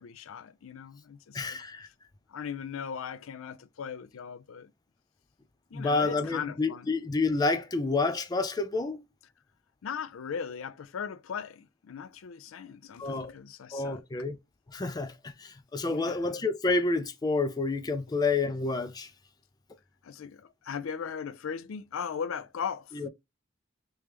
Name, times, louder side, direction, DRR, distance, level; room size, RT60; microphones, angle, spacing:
voice 1, 0.0-1.6 2.3-4.7 5.7-6.9 9.8-14.0 15.8-16.3 20.0-23.0, left 7 dB, 90° left, 0.4 m, -38 dB
voice 2, 1.3-1.9 5.7-9.0 13.0-13.3 13.7-14.4 14.7-19.1 22.9-23.1, left 3 dB, 20° left, 0.4 m, -29 dB
3.2 x 3.0 x 3.3 m
head